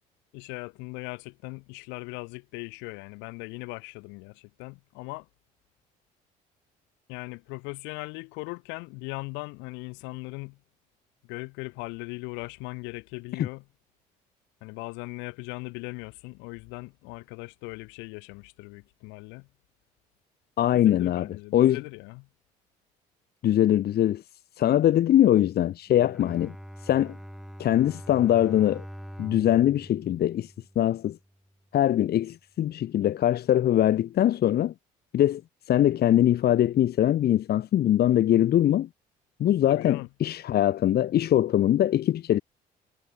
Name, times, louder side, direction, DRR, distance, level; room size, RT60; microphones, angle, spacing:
voice 1, 0.3-5.3 7.1-10.6 11.3-13.6 14.6-19.5 20.7-22.3 39.7-40.1, left 28 dB, 80° left, 4.5 m, -39 dB
voice 2, 20.6-21.8 23.4-24.2 24.6-26.5 26.8-27.1 27.6-28.8 29.2-31.2 31.7-34.7 35.1-35.4 35.7-38.9 39.4-42.4, left 12 dB, 60° left, 2.4 m, -22 dB
Bowed string instrument, 25.9-31.2, equal, ahead, 7.2 m, -43 dB
supercardioid pair, 70°, 18 cm